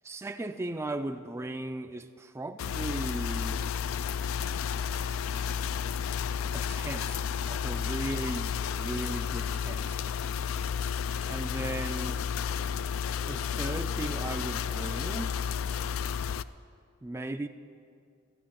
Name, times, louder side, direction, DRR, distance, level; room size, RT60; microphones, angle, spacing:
voice 1, 0.1-3.7 6.5-10.0 11.3-12.2 13.3-15.3 17.0-17.5, right 2 dB, 15° right, 7 dB, 0.3 m, -37 dB
sound 1, 2.6-16.4, left 7 dB, 85° left, 0.3 m, -32 dB
14.0 x 6.2 x 9.9 m, 2.3 s
head